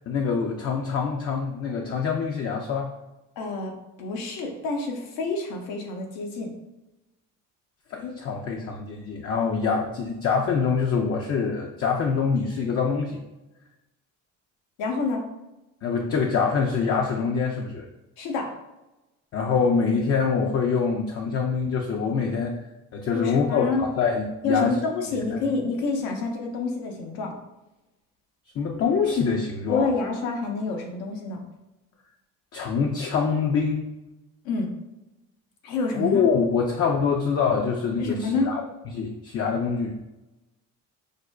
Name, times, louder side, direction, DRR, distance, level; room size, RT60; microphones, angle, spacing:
voice 1, 0.1-2.9 7.9-13.2 15.8-17.9 19.3-22.6 22.9-24.8 25.3-25.4 28.6-29.9 32.5-33.9 35.9-38.6 38.9-40.0, left 5 dB, 40° left, 2 dB, 0.5 m, -25 dB
voice 2, 3.4-6.5 14.8-15.2 18.2-18.5 23.1-23.9 24.4-27.3 29.7-31.4 34.4-34.7 35.6-36.2 38.0-38.5, left 3 dB, 75° left, 2 dB, 0.8 m, -28 dB
4.9 x 2.1 x 2.3 m, 0.99 s
supercardioid pair, 65°, 36 cm